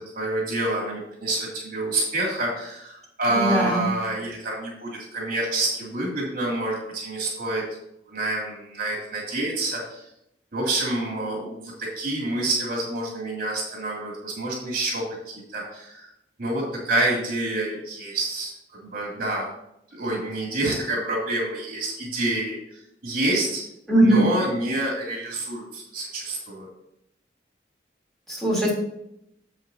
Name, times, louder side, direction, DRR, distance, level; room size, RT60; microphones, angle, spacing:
voice 1, 0.0-7.6 8.1-10.0 10.5-16.1 16.4-19.5 19.9-22.6 23.0-23.6 24.0-26.7, right 2 dB, 55° right, -3 dB, 3.0 m, -27 dB
voice 2, 3.3-3.9 23.9-24.2 28.3-28.7, right 1 dB, ahead, -6 dB, 3.7 m, -20 dB
10.5 x 7.5 x 2.9 m, 0.80 s
head